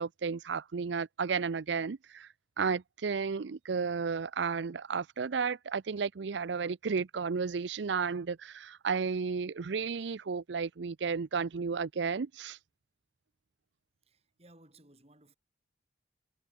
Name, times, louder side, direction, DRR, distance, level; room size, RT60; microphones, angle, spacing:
voice 1, 0.0-2.3 2.6-12.6, right 5 dB, 75° right, 0.5 m, -33 dB
voice 2, 14.0-15.4, right 1 dB, 35° right, 5.4 m, -60 dB
head